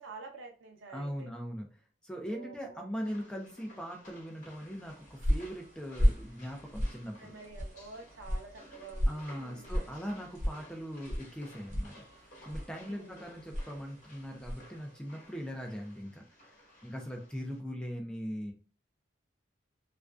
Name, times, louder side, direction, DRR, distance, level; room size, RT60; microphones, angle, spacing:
voice 1, 0.0-1.3 2.3-2.9 7.2-9.7 12.8-13.2, right 4 dB, 80° right, 3 dB, 0.6 m, -49 dB
voice 2, 0.9-1.7 2.0-7.3 9.1-16.5 16.8-18.5, equal, 5° left, 1 dB, 0.3 m, -40 dB
sound 1, 3.0-17.6, equal, 40° left, 1.0 m, -56 dB
sound 2, 4.7-14.8, equal, 40° right, 0.7 m, -35 dB
2.5 x 2.2 x 2.3 m, 0.38 s
head